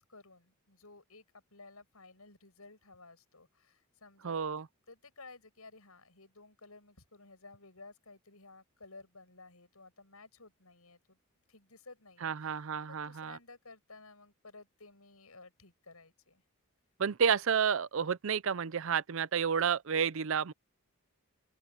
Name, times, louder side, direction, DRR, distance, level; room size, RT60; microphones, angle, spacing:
voice 1, 0.0-4.4 4.9-11.2 11.5-16.4, left 3 dB, 80° left, 7.7 m, -55 dB
voice 2, 4.2-4.6 12.2-13.4 17.0-20.5, right 7 dB, 60° right, 0.5 m, -30 dB
open air
head